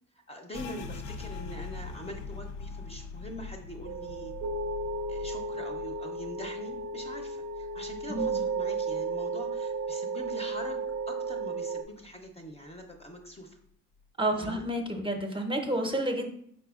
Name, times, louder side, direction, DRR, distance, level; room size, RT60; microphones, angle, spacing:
voice 1, 0.3-4.3 5.1-13.6 14.4-14.7, equal, 20° left, 2 dB, 0.6 m, -43 dB
sound 1, 0.5-9.9 10.2-11.5 11.8-12.3 12.7-13.3, left 4 dB, 80° left, 0.5 m, -44 dB
sound 2, 3.9-11.8, right 3 dB, 65° right, 0.5 m, -34 dB
voice 2, 8.1-8.4 14.2-16.3, right 1 dB, 15° right, 4 dB, 0.7 m, -30 dB
5.0 x 4.3 x 2.4 m, 0.67 s
cardioid pair, 90°, 30 cm